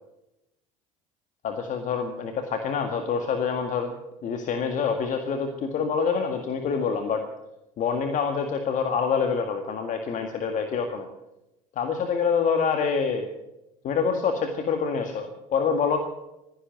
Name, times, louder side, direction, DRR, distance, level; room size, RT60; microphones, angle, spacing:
voice 1, 1.4-3.9 4.2-7.2 7.8-11.1 11.8-13.3 13.8-16.0, left 6 dB, 50° left, 5 dB, 1.8 m, -26 dB
14.0 x 10.5 x 9.0 m, 0.92 s
hypercardioid pair, 80°, 17 cm